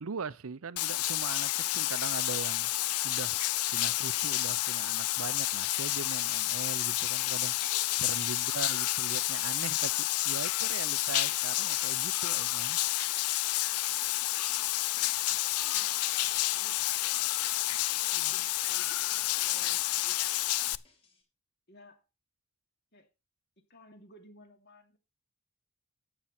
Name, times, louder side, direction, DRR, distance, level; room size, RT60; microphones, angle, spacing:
voice 1, 0.0-2.7 3.0-3.4 3.7-7.7 8.0-12.8, right 5 dB, 70° right, 0.6 m, -40 dB
Bathtub (filling or washing), 0.8-20.8, left 16 dB, 90° left, 0.5 m, -30 dB
voice 2, 1.6-1.9 7.5-8.0 15.6-16.0 16.3-16.8 18.1-20.3 21.7-22.0 22.9-23.1 23.6-25.0, left 1 dB, 50° left, 2.7 m, -57 dB
sound 1, 15.3-21.2, left 3 dB, 25° left, 5.0 m, -66 dB
12.0 x 8.8 x 4.3 m
head